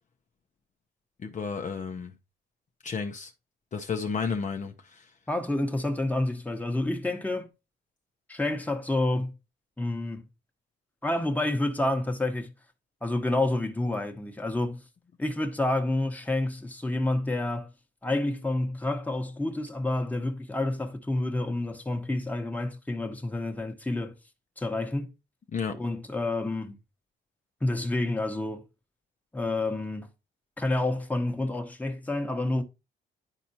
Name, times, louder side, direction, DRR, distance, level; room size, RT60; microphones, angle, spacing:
voice 1, 1.2-2.1 2.8-3.3 3.7-5.1 25.5-25.7, left 5 dB, 40° left, 0.7 m, -32 dB
voice 2, 5.3-7.5 8.3-9.3 9.8-10.2 11.0-12.5 13.0-14.8 15.2-17.7 18.0-24.1 24.6-25.1 25.7-26.8 27.6-28.7 29.3-30.1 30.6-32.6, left 2 dB, 10° left, 1.1 m, -29 dB
10.5 x 4.3 x 2.8 m
cardioid pair, 90°, 20 cm